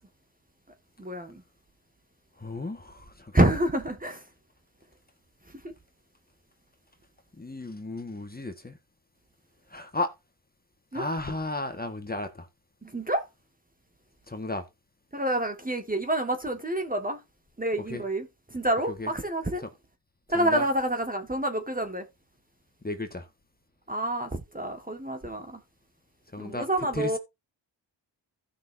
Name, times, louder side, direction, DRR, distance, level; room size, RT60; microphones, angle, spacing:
voice 1, 1.0-1.4 3.3-4.2 5.5-5.7 10.9-11.0 12.8-13.2 15.1-17.2 17.6-19.6 20.3-22.1 23.9-25.6 26.4-27.2, right 1 dB, 20° right, 1.8 m, -28 dB
voice 2, 2.3-3.5 7.3-8.8 9.7-10.2 10.9-12.5 14.3-14.7 17.9-18.0 18.9-19.1 19.6-19.7 20.3-20.7 22.8-23.3 26.3-27.2, left 2 dB, 20° left, 1.7 m, -34 dB
15.0 x 5.9 x 2.7 m
cardioid pair, 60°, 46 cm